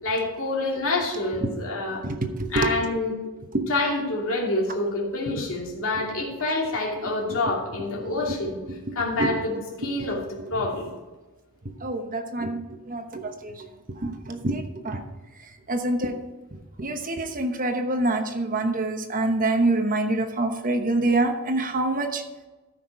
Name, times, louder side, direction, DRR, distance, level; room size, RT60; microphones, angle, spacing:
voice 1, 0.0-2.0 2.5-3.2 3.7-8.6 8.9-10.9, left 2 dB, 65° left, -2 dB, 2.8 m, -27 dB
voice 2, 2.0-2.7 3.5-3.6 9.2-9.3 11.8-12.6 12.9-13.5 14.0-15.0 15.7-16.1 16.8-22.2, right 2 dB, 40° right, 5 dB, 1.0 m, -25 dB
14.0 x 5.8 x 4.7 m, 1.1 s
head